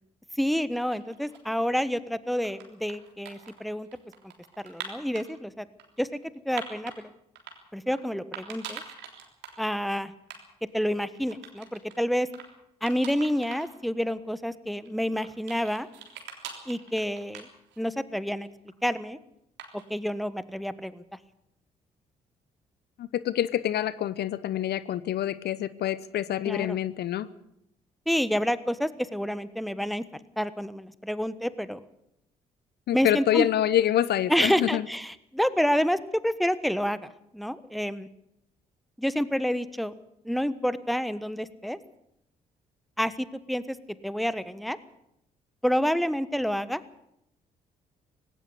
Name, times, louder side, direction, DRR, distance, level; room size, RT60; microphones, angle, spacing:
voice 1, 0.4-3.9 4.6-5.7 6.0-6.1 6.4-7.1 7.7-8.8 9.6-10.1 10.7-12.3 12.8-15.9 16.7-17.5 17.8-18.5 18.8-19.2 19.7-21.0 26.4-26.8 28.1-30.1 30.4-31.8 32.9-33.5 34.3-38.1 39.0-39.9 40.2-41.8 43.0-43.8 44.0-44.8 45.6-46.8, equal, ahead, 15 dB, 1.3 m, -28 dB
sound 1, 0.7-1.7 2.2-5.3 5.8-7.0 7.4-8.0 8.3-9.6 9.9-10.0 10.2-10.4 10.7-12.0 12.3-12.5 12.9-13.7 14.1-14.2 14.8-18.0 18.3-18.9 19.6-20.0, right 7 dB, 70° right, 3.5 m, -43 dB
voice 2, 23.0-27.3 32.9-34.9, left 11 dB, 60° left, 17 dB, 0.8 m, -26 dB
18.0 x 17.0 x 8.3 m, 0.79 s
hypercardioid pair, 45°, 19 cm